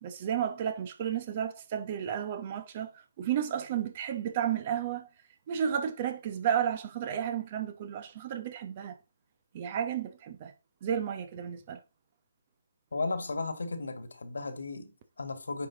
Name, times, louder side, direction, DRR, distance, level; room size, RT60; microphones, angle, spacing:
voice 1, 0.0-5.1 5.5-9.0 9.5-10.5 10.8-11.8, right 9 dB, 30° right, 1.0 m, -32 dB
voice 2, 12.9-15.7, left 3 dB, 65° left, 1.7 m, -35 dB
9.6 x 4.9 x 3.9 m
figure-of-eight pair, 145°, 0 cm